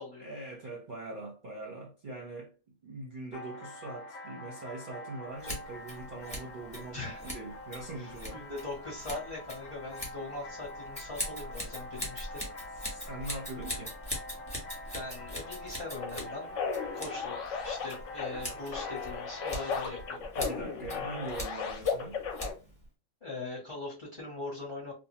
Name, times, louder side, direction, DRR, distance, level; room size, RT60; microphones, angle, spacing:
voice 1, 0.2-2.5 2.8-8.4 12.8-14.0 20.4-22.2, right 2 dB, 50° right, 0.6 m, -42 dB
sound 1, 3.3-20.2, left 1 dB, 85° left, 1.1 m, -46 dB
Scissors, 5.4-22.9, equal, 5° left, 0.9 m, -43 dB
voice 2, 6.9-7.2 8.0-12.4 14.9-16.6 16.9-20.2 23.2-24.9, left 2 dB, 25° left, 0.9 m, -41 dB
sound 2, 16.0-22.5, left 6 dB, 65° left, 1.0 m, -36 dB
2.6 x 2.2 x 2.9 m
omnidirectional pair, 1.5 m